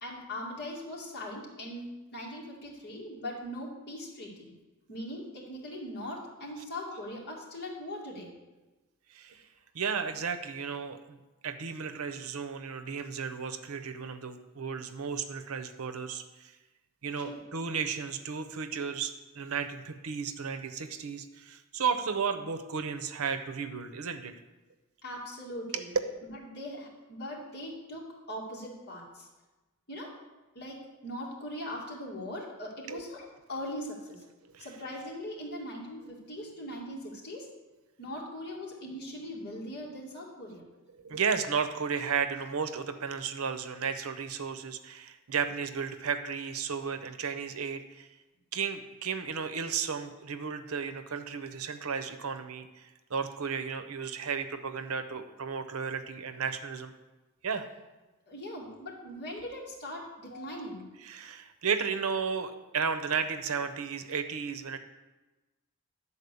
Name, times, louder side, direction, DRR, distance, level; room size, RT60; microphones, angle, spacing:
voice 1, 0.0-4.5 4.9-8.3 17.2-17.4 25.0-25.9 26.3-29.3 29.9-30.1 30.6-34.2 34.6-37.5 38.0-40.6 58.3-60.9, left 1 dB, 50° left, -3 dB, 2.3 m, -40 dB
voice 2, 9.1-9.4 9.7-11.2 11.4-16.5 17.0-24.3 25.7-26.0 32.9-33.1 34.5-35.0 40.9-48.1 48.5-56.9 57.4-57.7 60.9-64.8, right 6 dB, 75° right, 10 dB, 0.7 m, -34 dB
10.0 x 4.3 x 6.9 m, 1.1 s
head